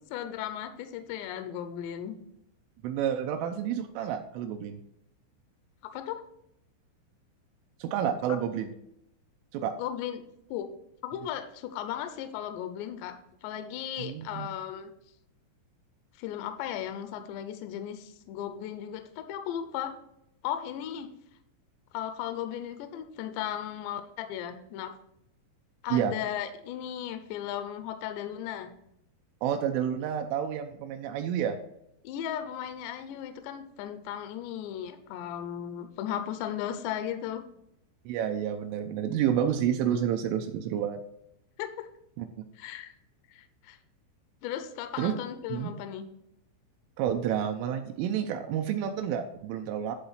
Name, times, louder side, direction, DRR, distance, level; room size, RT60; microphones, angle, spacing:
voice 1, 0.1-2.2 5.9-6.2 9.8-10.2 10.5-10.7 11.0-13.1 13.4-14.9 16.2-19.9 20.4-21.1 21.9-24.9 25.8-28.7 32.0-37.4 41.6-41.9 42.6-42.9 43.3-43.8 44.4-46.1, left 10 dB, 80° left, 7 dB, 2.6 m, -36 dB
voice 2, 2.8-4.8 7.8-8.7 9.5-9.7 14.0-14.5 25.9-26.1 29.4-31.6 38.1-41.0 42.2-42.3 45.0-45.1 45.5-45.7 47.0-50.0, right 9 dB, 80° right, 5 dB, 3.0 m, -29 dB
11.5 x 3.9 x 5.6 m, 0.79 s
omnidirectional pair, 5.7 m